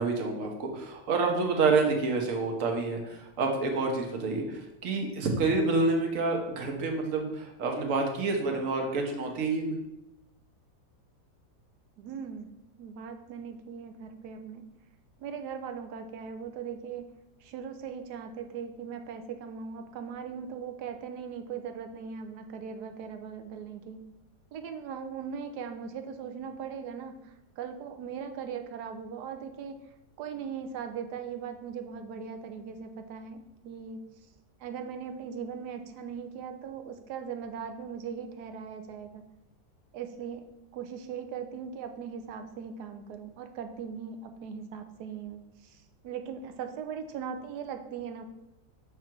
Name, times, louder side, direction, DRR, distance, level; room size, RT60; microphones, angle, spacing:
voice 1, 0.0-9.8, right 3 dB, 55° right, 3 dB, 1.3 m, -28 dB
voice 2, 12.0-12.5 12.8-14.7 15.2-17.1 17.4-24.0 24.5-29.8 30.2-34.1 34.6-39.2 39.9-40.5 40.7-48.2, right 7 dB, 80° right, 7 dB, 1.2 m, -39 dB
6.8 x 3.7 x 4.4 m, 0.90 s
omnidirectional pair, 1.7 m